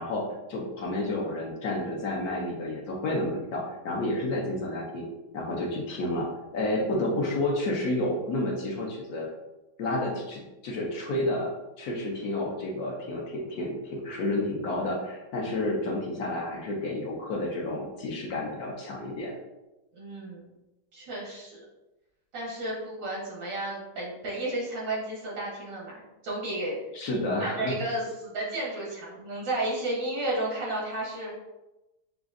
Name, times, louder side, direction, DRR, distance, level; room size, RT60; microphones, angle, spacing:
voice 1, 0.0-5.0 5.3-6.3 6.5-9.3 9.8-19.3 26.9-27.7, left 1 dB, 65° left, -2 dB, 1.1 m, -30 dB
voice 2, 19.9-20.5 20.9-21.7 22.3-26.8 27.4-31.3, right 1 dB, 90° right, -5 dB, 2.1 m, -32 dB
6.0 x 2.4 x 2.4 m, 1.0 s
omnidirectional pair, 1.9 m